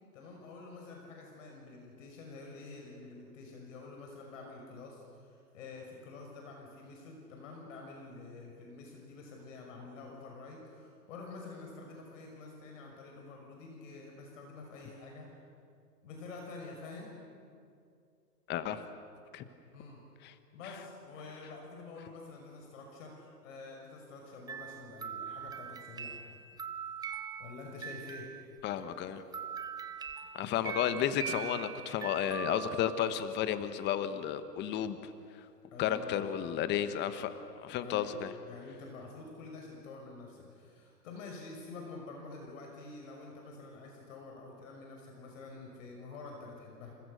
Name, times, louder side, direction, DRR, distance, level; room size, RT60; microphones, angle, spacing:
voice 1, 0.1-15.3 16.0-17.2 19.7-20.0 20.5-26.2 27.4-28.3 30.6-30.7 35.7-36.5 37.8-46.9, left 3 dB, 50° left, 1 dB, 5.9 m, -48 dB
voice 2, 18.5-18.8 19.3-19.4 28.6-29.2 30.3-35.0 35.8-37.3 37.6-38.3, left 10 dB, 20° left, 11 dB, 1.4 m, -32 dB
sound 1, 24.5-28.8 29.3-33.3, right 7 dB, 10° right, 0.9 m, -42 dB
30.0 x 28.0 x 6.6 m, 2.4 s
figure-of-eight pair, 120°, 48 cm